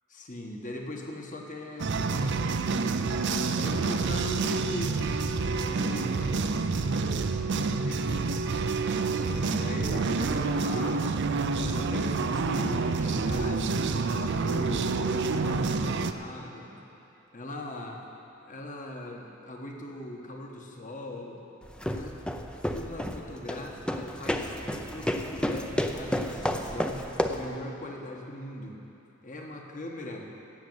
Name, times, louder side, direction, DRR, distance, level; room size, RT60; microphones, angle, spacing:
voice 1, 0.1-2.7 3.5-5.0 5.4-8.5 9.5-11.1 11.6-15.0 15.3-16.8 17.3-18.0 18.4-21.4 21.9-28.8 29.2-30.3, left 1 dB, 40° left, 1 dB, 1.4 m, -40 dB
sound 1, 1.8-16.1, right 4 dB, 60° right, 0.5 m, -28 dB
sound 2, 21.6-27.5, equal, 5° left, 0.6 m, -31 dB
16.5 x 6.6 x 8.0 m, 2.9 s
head